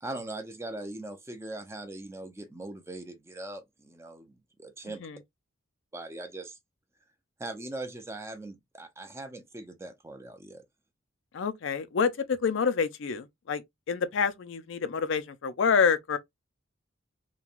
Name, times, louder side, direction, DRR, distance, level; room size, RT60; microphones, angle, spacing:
voice 1, 0.0-5.1 5.9-6.6 7.4-10.6, right 2 dB, 15° right, 0.5 m, -40 dB
voice 2, 4.8-5.2 11.3-16.2, left 6 dB, 65° left, 0.4 m, -28 dB
3.1 x 2.2 x 2.4 m
head